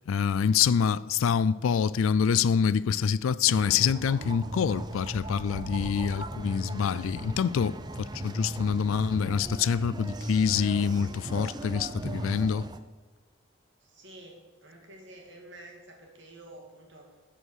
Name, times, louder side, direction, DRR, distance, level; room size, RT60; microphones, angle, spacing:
voice 1, 0.1-12.7, left 7 dB, 75° left, 0.3 m, -26 dB
sound 1, 3.5-12.8, right 1 dB, 20° right, 0.5 m, -38 dB
voice 2, 13.8-17.2, right 1 dB, 55° right, 2.3 m, -49 dB
13.0 x 5.0 x 6.3 m
head